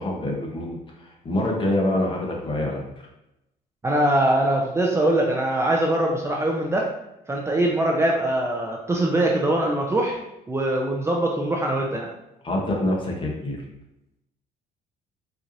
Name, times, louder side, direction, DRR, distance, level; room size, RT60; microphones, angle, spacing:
voice 1, 0.0-2.8 12.4-13.6, left 1 dB, 30° left, -1 dB, 0.9 m, -26 dB
voice 2, 3.8-6.9 7.3-10.2 10.5-12.1, right 1 dB, 15° right, -1 dB, 0.5 m, -22 dB
4.5 x 2.6 x 2.6 m, 0.88 s
cardioid pair, 110°, 17 cm